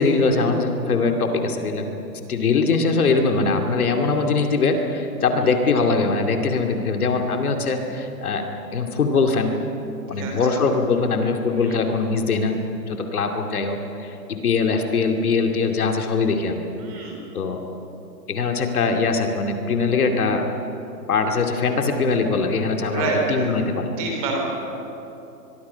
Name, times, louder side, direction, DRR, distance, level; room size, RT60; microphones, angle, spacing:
voice 1, 0.0-1.9 2.3-8.4 8.7-9.6 10.1-16.6 17.3-17.6 18.3-20.5 21.1-23.9, left 4 dB, 60° left, 4 dB, 2.6 m, -22 dB
voice 2, 16.8-17.2 22.9-23.5 24.0-24.4, right 4 dB, 20° right, 0 dB, 3.4 m, -27 dB
24.5 x 23.0 x 5.7 m, 3.0 s
hypercardioid pair, 175°, 49 cm